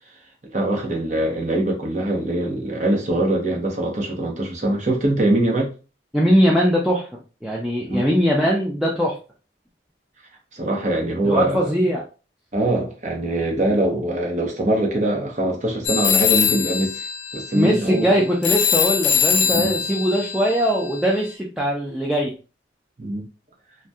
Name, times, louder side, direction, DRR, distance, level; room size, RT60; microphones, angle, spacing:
voice 1, 0.5-5.7 7.9-8.1 10.5-11.7 12.5-17.0 17.3-18.1 19.4-19.7 23.0-23.2, right 1 dB, 40° right, 0.8 m, -23 dB
voice 2, 6.1-7.1 7.4-9.2 11.2-12.0 17.5-22.3, equal, ahead, 0.4 m, -20 dB
sound 1, 15.8-21.3, left 8 dB, 80° left, 0.4 m, -22 dB
2.6 x 2.2 x 3.4 m
head